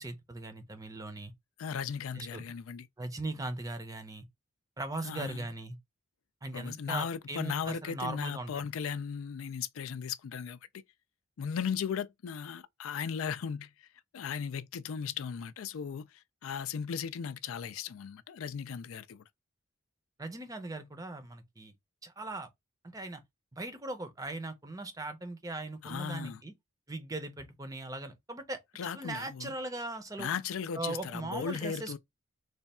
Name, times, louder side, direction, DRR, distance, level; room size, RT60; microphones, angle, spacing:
voice 1, 0.0-1.3 2.1-2.4 3.0-4.3 4.8-5.8 6.4-8.5 20.2-21.7 22.0-22.5 22.9-23.2 23.5-26.5 26.9-30.3 30.7-32.0, right 2 dB, 15° right, 0.6 m, -39 dB
voice 2, 1.6-2.9 5.0-5.5 6.5-10.6 11.4-13.9 14.1-19.2 25.8-26.4 28.8-29.5 30.2-32.0, left 7 dB, 80° left, 0.4 m, -37 dB
3.3 x 2.3 x 4.1 m
head